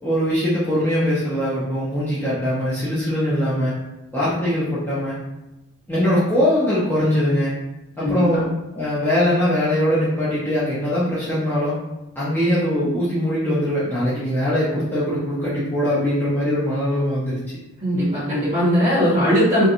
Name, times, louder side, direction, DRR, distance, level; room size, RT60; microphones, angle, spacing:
voice 1, 0.0-3.7 4.1-5.2 5.9-7.5 8.0-8.5 8.7-11.8 12.2-17.4, equal, 10° left, -10 dB, 0.5 m, -21 dB
voice 2, 17.8-19.7, equal, 25° right, -13 dB, 0.9 m, -19 dB
2.7 x 2.2 x 2.4 m, 0.95 s
head